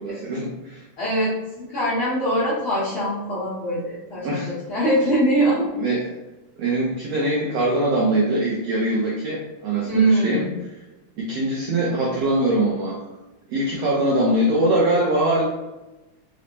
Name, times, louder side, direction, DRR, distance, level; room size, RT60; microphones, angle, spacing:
voice 1, 0.0-0.8 4.2-4.5 5.8-6.0 6.6-10.4 11.2-13.0 13.5-15.4, right 1 dB, 90° right, -4 dB, 1.4 m, -22 dB
voice 2, 1.0-5.7 9.9-10.5, right 1 dB, 65° left, -11 dB, 1.3 m, -22 dB
5.2 x 2.1 x 2.9 m, 1.0 s
omnidirectional pair, 3.6 m